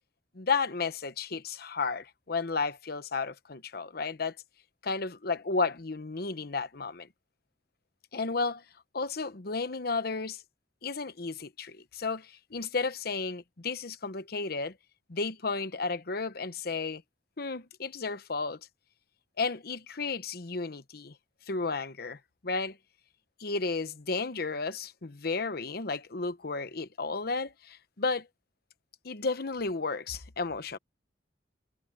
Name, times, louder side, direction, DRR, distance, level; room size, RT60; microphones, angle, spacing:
voice 1, 0.3-4.4 4.8-7.1 8.1-8.6 8.9-10.4 10.8-14.8 15.1-17.0 17.4-18.6 19.4-21.1 21.5-22.8 23.4-28.3 29.0-30.8, left 4 dB, 60° left, 1.0 m, -33 dB
head